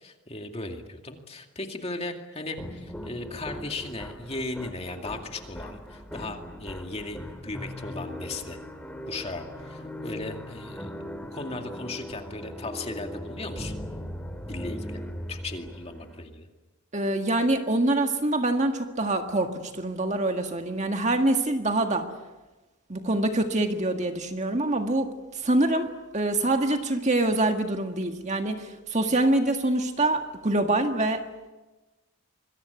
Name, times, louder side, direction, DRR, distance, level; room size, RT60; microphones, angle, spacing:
voice 1, 0.0-8.6 9.1-10.9 11.3-13.8 14.5-15.0 15.3-16.5, left 2 dB, 30° left, 4 dB, 2.3 m, -37 dB
sound 1, 2.6-16.2, equal, 5° left, 1.9 m, -39 dB
voice 2, 16.9-22.1 22.9-31.2, right 2 dB, 30° right, 5 dB, 1.8 m, -25 dB
26.5 x 22.5 x 8.3 m, 1.1 s
head